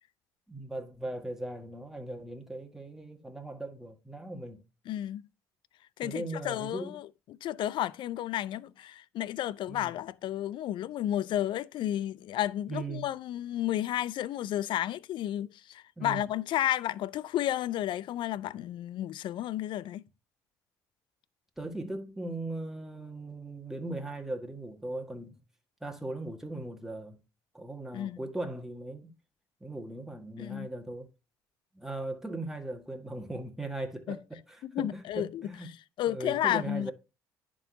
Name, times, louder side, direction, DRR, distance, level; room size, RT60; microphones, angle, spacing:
voice 1, 0.5-4.6 6.0-7.0 9.7-9.9 12.7-13.1 16.0-16.2 21.6-25.4 25.8-27.2 27.5-29.1 29.6-31.1 31.7-35.7 36.1-36.9, right 2 dB, 5° right, 1.7 m, -39 dB
voice 2, 4.9-5.2 6.0-7.1 7.4-20.0 27.9-28.2 30.4-30.7 34.1-34.2 34.6-35.5 36.0-36.9, left 12 dB, 60° left, 0.4 m, -32 dB
10.5 x 3.8 x 2.7 m
hypercardioid pair, 65°, 9 cm